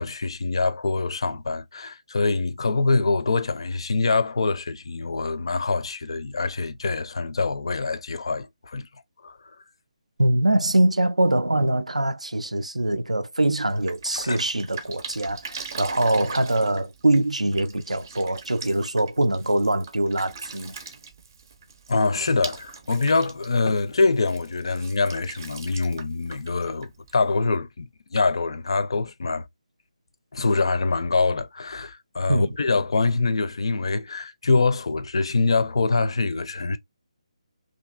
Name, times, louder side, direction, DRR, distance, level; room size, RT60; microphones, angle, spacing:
voice 1, 0.0-8.9 9.2-9.4 14.1-14.4 21.9-29.5 30.3-36.8, left 3 dB, 50° left, 0.4 m, -24 dB
voice 2, 10.2-20.7 32.3-32.5, right 1 dB, 80° right, 0.4 m, -23 dB
Drip, 13.5-27.5, right 5 dB, 30° right, 0.6 m, -41 dB
2.7 x 2.6 x 2.2 m
figure-of-eight pair, 150°, 4 cm